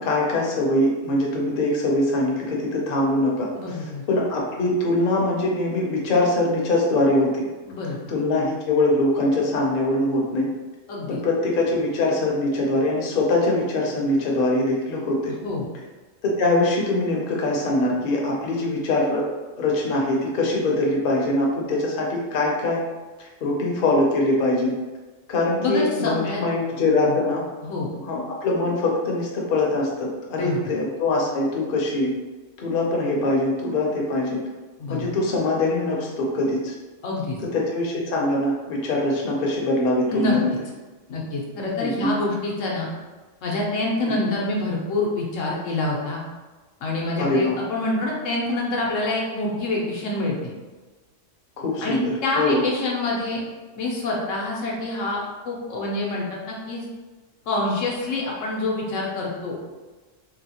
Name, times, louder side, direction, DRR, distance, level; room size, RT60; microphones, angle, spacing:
voice 1, 0.0-3.5 4.1-7.5 8.1-10.5 11.1-15.3 16.2-19.3 19.6-22.8 23.2-24.7 25.3-27.4 27.9-32.1 32.6-34.4 34.9-36.7 37.5-40.5 41.8-42.1 44.2-44.3 47.2-47.5 51.6-52.6, left 2 dB, 50° left, -2 dB, 0.7 m, -23 dB
voice 2, 3.6-4.0 7.7-8.0 10.9-11.2 15.3-15.7 25.6-26.4 27.0-27.2 27.6-27.9 30.3-30.7 34.8-35.1 37.0-37.4 40.1-40.3 41.1-42.9 43.4-46.2 46.8-50.5 51.8-53.4 53.8-55.2 55.4-56.8 57.5-59.6, left 2 dB, 85° left, -3 dB, 1.1 m, -26 dB
3.0 x 2.8 x 2.8 m, 1.3 s
omnidirectional pair, 1.3 m